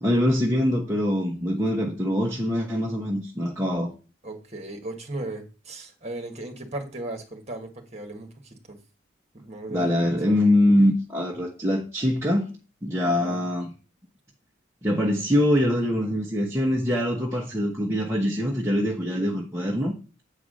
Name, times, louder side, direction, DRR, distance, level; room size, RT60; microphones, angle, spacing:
voice 1, 0.0-3.9 9.7-12.5 12.8-13.7 14.8-19.9, left 1 dB, 15° right, -4 dB, 1.2 m, -23 dB
voice 2, 4.2-8.8 9.3-10.5 13.0-13.4, right 2 dB, 35° right, 4 dB, 1.8 m, -37 dB
8.3 x 4.8 x 6.4 m, 0.33 s
head